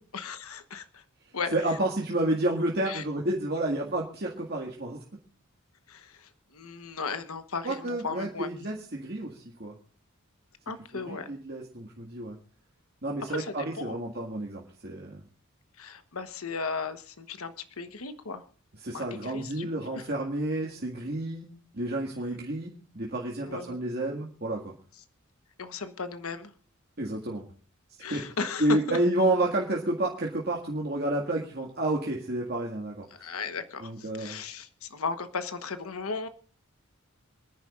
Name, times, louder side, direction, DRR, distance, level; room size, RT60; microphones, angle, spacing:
voice 1, 0.1-1.0 1.3-1.5 2.8-3.0 5.9-8.5 10.7-11.3 13.3-14.0 15.8-18.4 18.9-19.7 19.9-20.1 23.4-23.8 25.6-26.5 28.0-29.0 33.1-36.3, left 4 dB, 90° left, 10 dB, 1.2 m, -36 dB
voice 2, 1.5-5.0 7.6-9.7 10.9-12.4 13.0-15.2 18.8-21.5 21.7-24.7 27.0-27.5 28.1-28.2 28.6-33.3 33.8-34.4, right 1 dB, 50° right, -2 dB, 2.0 m, -30 dB
27.5 x 10.5 x 2.5 m, 0.42 s
head